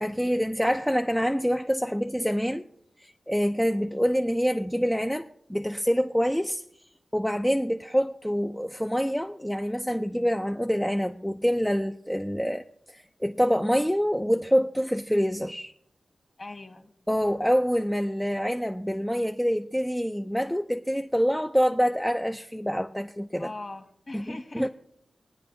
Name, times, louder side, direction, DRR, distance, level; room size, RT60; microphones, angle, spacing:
voice 1, 0.0-2.7 3.0-6.6 7.1-15.7 17.1-23.5 24.1-24.7, equal, 5° left, 0.4 m, -26 dB
voice 2, 16.4-16.9 23.4-24.7, left 2 dB, 35° left, 1.5 m, -40 dB
28.0 x 9.6 x 2.7 m
wide cardioid pair, 145°, 0 cm